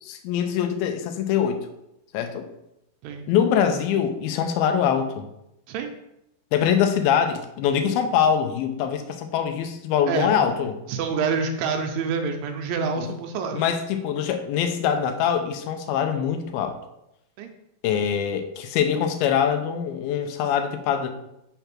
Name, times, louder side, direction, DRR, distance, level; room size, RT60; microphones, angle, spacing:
voice 1, 0.0-1.7 2.1-2.5 3.3-5.3 6.5-10.7 13.0-13.1 13.5-16.8 17.8-21.1, left 8 dB, 85° left, 7 dB, 2.5 m, -23 dB
voice 2, 10.9-13.6 17.4-17.5, right 5 dB, 80° right, 5 dB, 2.2 m, -27 dB
5.9 x 3.4 x 5.8 m, 0.84 s
omnidirectional pair, 4.3 m